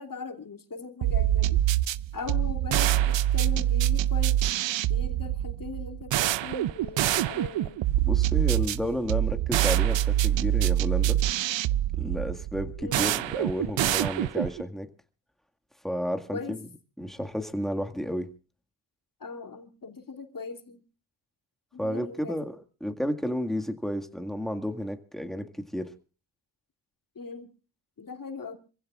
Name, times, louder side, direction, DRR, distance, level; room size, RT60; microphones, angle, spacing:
voice 1, 0.0-1.6 2.1-4.5 4.9-7.8 12.8-13.2 16.3-16.6 19.2-20.8 21.7-22.5 27.1-27.5 28.0-28.6, left 4 dB, 45° left, 3.1 m, -39 dB
sound 1, 1.0-14.6, right 13 dB, 75° right, 0.6 m, -25 dB
voice 2, 8.1-11.2 12.0-14.9 15.8-16.7 17.0-18.3 21.8-25.9, equal, ahead, 1.9 m, -32 dB
27.0 x 16.0 x 2.5 m
cardioid pair, 70°, 45 cm